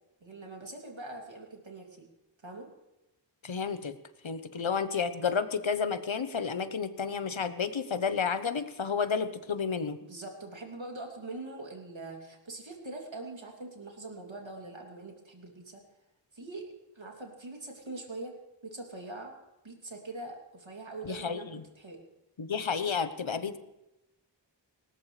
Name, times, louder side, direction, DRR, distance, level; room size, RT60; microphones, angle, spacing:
voice 1, 0.2-2.1 2.4-2.7 10.0-15.8 16.3-18.3 18.6-19.3 19.6-21.5 21.8-22.0, right 2 dB, 80° right, 1 dB, 2.9 m, -43 dB
voice 2, 3.4-4.0 4.2-10.0 21.0-21.6 22.4-23.6, left 6 dB, 85° left, 11 dB, 1.0 m, -31 dB
19.5 x 18.5 x 3.3 m, 0.96 s
wide cardioid pair, 45°, 45 cm